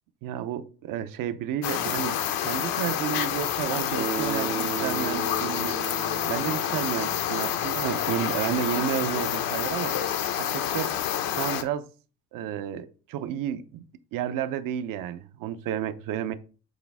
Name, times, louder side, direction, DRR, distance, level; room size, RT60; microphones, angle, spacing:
voice 1, 0.2-5.8 6.2-10.0 10.4-10.9 11.4-11.9 12.3-13.8 14.1-16.3, right 10 dB, 70° right, 0.7 m, -31 dB
sound 1, 1.6-11.6, left 10 dB, 75° left, 0.9 m, -28 dB
Bass guitar, 4.0-8.0, right 7 dB, 25° right, 0.3 m, -36 dB
8.5 x 4.0 x 3.5 m
cardioid pair, 145°, 35 cm